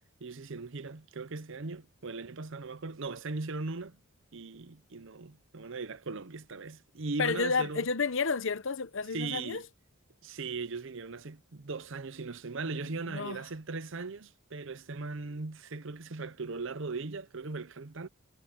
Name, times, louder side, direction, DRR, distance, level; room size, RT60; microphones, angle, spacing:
voice 1, 0.2-4.0 4.3-7.9 9.1-9.6 10.2-18.1, right 3 dB, 60° right, 0.8 m, -39 dB
voice 2, 7.2-9.6 13.1-13.4, left 4 dB, 60° left, 0.9 m, -31 dB
head